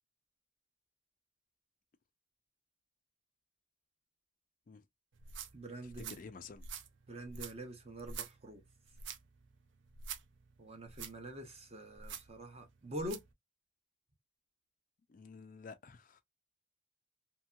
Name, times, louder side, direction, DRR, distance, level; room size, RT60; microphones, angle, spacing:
sound 1, 5.1-13.3, right 6 dB, 60° right, 0.5 m, -49 dB
voice 1, 5.5-6.2 7.1-8.6 10.6-13.2, right 1 dB, 30° right, 0.8 m, -45 dB
voice 2, 6.1-6.7 15.1-16.2, left 5 dB, 40° left, 0.3 m, -51 dB
2.9 x 2.8 x 2.2 m
head